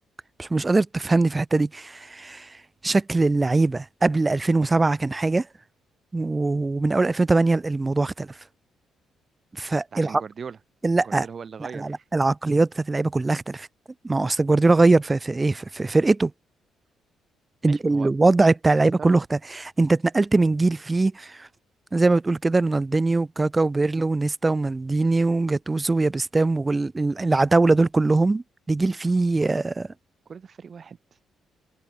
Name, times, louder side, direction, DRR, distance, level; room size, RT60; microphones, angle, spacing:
voice 1, 0.4-2.5 2.8-5.5 6.1-8.3 9.5-10.1 10.8-11.3 11.7-13.7 14.0-16.3 17.6-21.5 21.9-29.9, right 3 dB, 20° right, 1.0 m, -22 dB
voice 2, 9.9-10.6 11.0-12.0 17.7-18.1 18.8-19.1 30.3-31.0, right 6 dB, 45° right, 4.6 m, -39 dB
cardioid pair, 90°, 0 cm